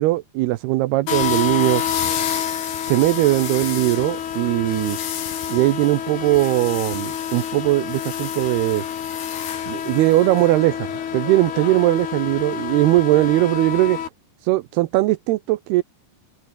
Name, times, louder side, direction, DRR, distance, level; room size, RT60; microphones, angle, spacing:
voice 1, 0.0-1.8 2.9-5.0 5.5-8.8 9.7-10.9 11.1-14.0 14.4-15.8, right 18 dB, 80° right, 2.7 m, -19 dB
sound 1, 1.1-14.1, left 9 dB, 70° left, 4.6 m, -27 dB
omnidirectional pair, 4.8 m